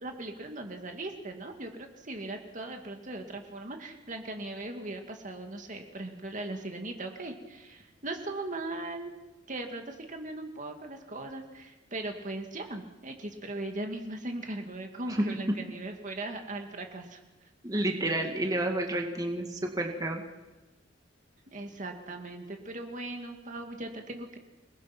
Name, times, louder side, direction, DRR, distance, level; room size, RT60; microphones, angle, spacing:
voice 1, 0.0-9.1 9.5-17.2 21.5-24.4, right 2 dB, 40° right, 4 dB, 2.2 m, -39 dB
voice 2, 17.6-20.2, right 1 dB, 20° right, 2 dB, 2.1 m, -30 dB
28.5 x 20.5 x 6.1 m, 1.1 s
head